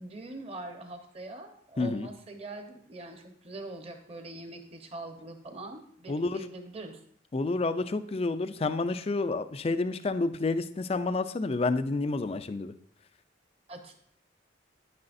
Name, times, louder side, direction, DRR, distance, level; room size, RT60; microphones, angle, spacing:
voice 1, 0.0-7.0 13.7-13.9, right 2 dB, 30° right, 5 dB, 1.0 m, -43 dB
voice 2, 1.8-2.1 6.1-6.5 7.3-12.7, left 3 dB, 30° left, 12 dB, 0.4 m, -29 dB
9.6 x 9.6 x 2.6 m, 0.64 s
head